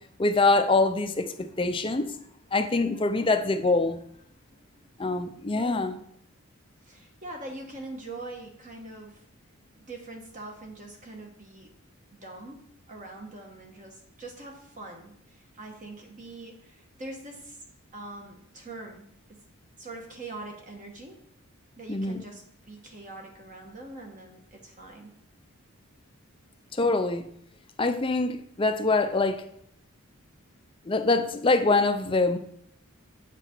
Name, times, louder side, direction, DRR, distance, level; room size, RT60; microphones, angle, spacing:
voice 1, 0.2-2.1 2.5-4.0 5.0-6.0 21.9-22.2 26.8-27.3 27.8-29.4 30.9-32.4, left 3 dB, 25° left, 0.5 m, -24 dB
voice 2, 5.5-6.0 6.8-9.2 9.7-11.7 12.2-17.6 17.9-19.4 19.8-21.2 21.8-25.1, right 2 dB, 35° right, 1.2 m, -43 dB
8.1 x 5.9 x 4.4 m
head